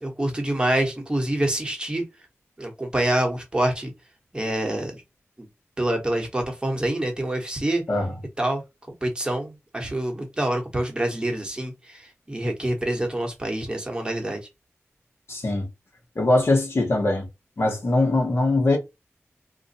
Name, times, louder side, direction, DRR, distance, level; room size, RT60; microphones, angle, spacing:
voice 1, 0.0-2.0 2.6-3.9 4.3-5.0 5.4-5.5 5.8-7.8 8.4-8.6 9.0-14.4, right 1 dB, 20° right, 1.0 m, -26 dB
voice 2, 15.3-15.7 16.2-17.3 17.6-18.8, left 2 dB, 55° left, 1.1 m, -21 dB
2.5 x 2.2 x 4.0 m
wide cardioid pair, 95°, 5 cm